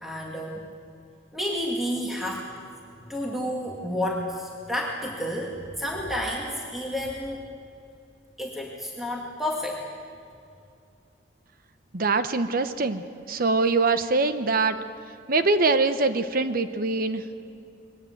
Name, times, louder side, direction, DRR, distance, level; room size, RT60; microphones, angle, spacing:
voice 1, 0.0-0.7 1.3-2.5 3.1-7.4 8.4-9.8, left 1 dB, ahead, -3 dB, 2.0 m, -30 dB
voice 2, 11.9-14.8 15.3-17.2, right 3 dB, 55° right, 10 dB, 0.9 m, -23 dB
21.5 x 19.0 x 7.9 m, 2.5 s
head